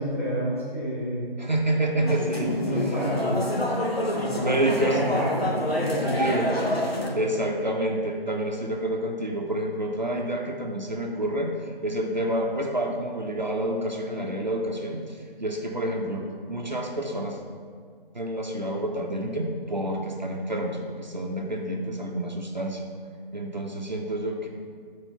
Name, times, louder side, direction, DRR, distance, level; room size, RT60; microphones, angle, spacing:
voice 1, 0.0-1.3 2.0-3.4 4.1-7.3, equal, 15° left, -11 dB, 1.0 m, -30 dB
voice 2, 1.4-2.5 2.9-3.0 4.3-5.0 6.2-6.5 7.1-17.4 18.1-22.8 23.3-24.5, right 1 dB, 50° right, 1 dB, 0.6 m, -28 dB
sound 1, 2.1-7.1, left 1 dB, 90° left, 1.1 m, -27 dB
4.8 x 4.5 x 5.6 m, 2.1 s
figure-of-eight pair, 165°, 29 cm